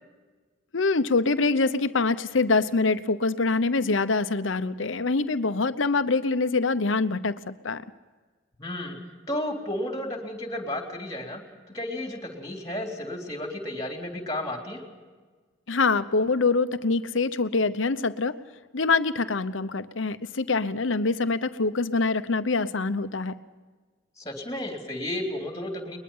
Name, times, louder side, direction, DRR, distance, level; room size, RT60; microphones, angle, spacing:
voice 1, 0.7-7.8 15.7-18.4 18.7-23.4, left 3 dB, 80° left, 12 dB, 0.9 m, -25 dB
voice 2, 8.6-9.0 9.3-11.4 11.7-14.8 24.2-26.0, left 1 dB, 20° left, 2 dB, 3.4 m, -33 dB
22.0 x 21.0 x 5.6 m, 1.4 s
head